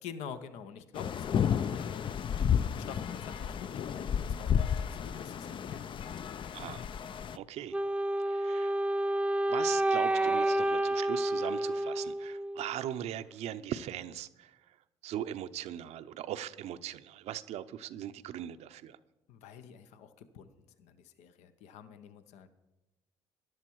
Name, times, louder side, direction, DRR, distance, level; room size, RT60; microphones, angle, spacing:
voice 1, 0.0-2.2 2.8-6.1 19.3-20.5 20.8-22.5, left 7 dB, 75° left, 11 dB, 0.9 m, -47 dB
sound 1, 1.0-7.4, left 8 dB, 45° left, 0.5 m, -32 dB
voice 2, 7.3-7.8 8.3-8.7 9.5-14.5 15.0-19.0, right 11 dB, 65° right, 11 dB, 0.7 m, -39 dB
Wind instrument woodwind instrument, 7.7-12.8, right 1 dB, 10° right, 0.4 m, -29 dB
14.0 x 11.0 x 4.7 m, 1.0 s
supercardioid pair, 65°, 12 cm